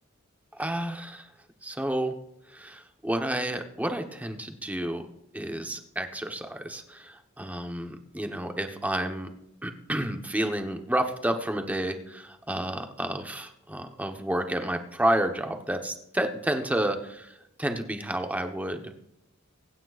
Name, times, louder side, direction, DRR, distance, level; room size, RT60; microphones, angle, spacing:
voice 1, 0.6-1.3 1.6-2.1 2.5-5.0 5.3-9.3 9.6-18.8, right 1 dB, 5° right, 5 dB, 1.0 m, -30 dB
24.0 x 9.0 x 2.5 m, 0.80 s
head